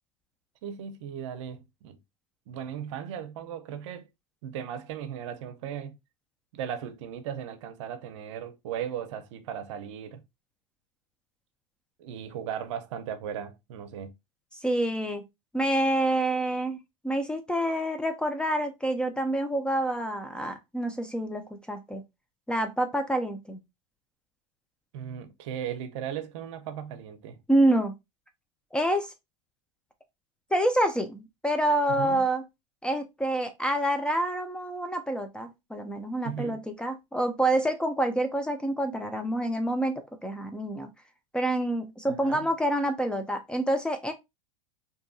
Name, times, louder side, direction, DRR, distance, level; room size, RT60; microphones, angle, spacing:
voice 1, 0.6-2.0 2.5-4.1 4.4-6.0 6.5-10.2 12.0-14.1 24.9-27.4 31.9-32.2 36.2-36.6 42.1-42.5, right 9 dB, 70° right, 0.6 m, -37 dB
voice 2, 14.6-15.2 15.5-16.8 17.0-22.0 22.5-23.6 27.5-27.9 28.7-29.1 30.5-32.4 32.8-40.9 41.3-44.1, right 1 dB, 5° left, 0.3 m, -27 dB
2.7 x 2.5 x 2.3 m
supercardioid pair, 125°, 16 cm